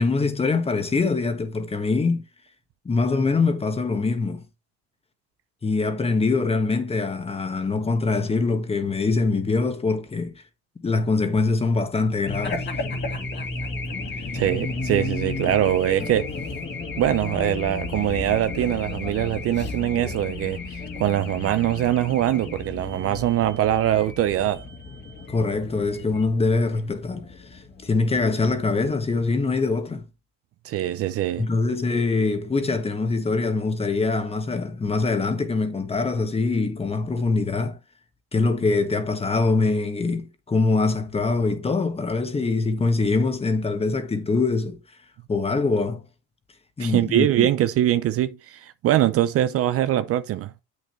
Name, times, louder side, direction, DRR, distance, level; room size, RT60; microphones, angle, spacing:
voice 1, 0.0-2.2 2.8-4.4 5.6-10.4 10.8-12.7 14.2-14.3 15.4-15.5 16.0-16.1 25.3-30.0 31.4-37.8 38.3-44.8 45.3-46.0 46.8-47.5, left 3 dB, 20° left, 1.5 m, -23 dB
Race car auto racing / Alarm, 12.2-29.2, left 3 dB, 35° left, 2.1 m, -33 dB
voice 2, 14.3-16.3 17.0-24.6 30.6-31.5 46.8-50.5, right 12 dB, 45° right, 0.6 m, -23 dB
8.1 x 6.6 x 3.2 m
supercardioid pair, 105°, 32 cm